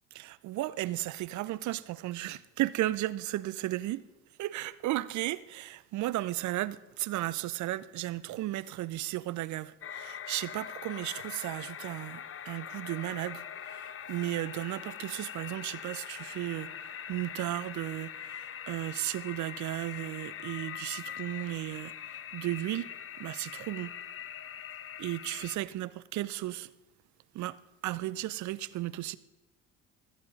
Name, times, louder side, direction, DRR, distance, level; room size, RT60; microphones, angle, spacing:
voice 1, 0.1-4.1 4.4-22.9 23.2-24.0 25.0-26.7 27.3-29.2, right 16 dB, 50° right, 0.7 m, -35 dB
sound 1, 9.8-25.6, left 9 dB, 35° left, 1.0 m, -43 dB
16.5 x 14.0 x 4.1 m
hypercardioid pair, 60°, 36 cm